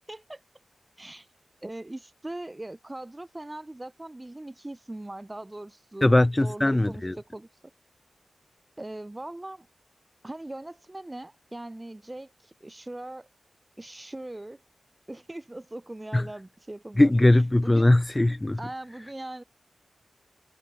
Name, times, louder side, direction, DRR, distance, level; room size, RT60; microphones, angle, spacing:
voice 1, 0.1-0.4 1.0-1.3 1.6-6.1 6.4-7.5 8.8-9.7 10.2-13.3 13.8-14.6 15.1-17.1 17.6-17.9 18.6-19.4, right 1 dB, 15° right, 0.9 m, -40 dB
voice 2, 6.0-7.2 16.1-16.2 17.0-18.6, left 1 dB, 15° left, 0.4 m, -20 dB
wide cardioid pair, 145°, 0 cm